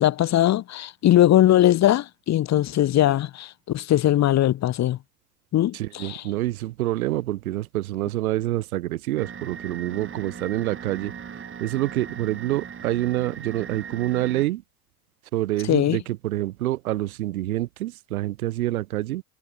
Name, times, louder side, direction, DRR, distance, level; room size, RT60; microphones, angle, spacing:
voice 1, 0.0-5.0 5.5-6.2 15.7-16.0, left 13 dB, 40° left, 0.9 m, -20 dB
voice 2, 5.7-11.1 11.6-14.6 15.3-19.2, right 16 dB, 90° right, 0.6 m, -27 dB
sound 1, 9.2-14.5, right 7 dB, 30° right, 1.8 m, -39 dB
hypercardioid pair, 70°, 42 cm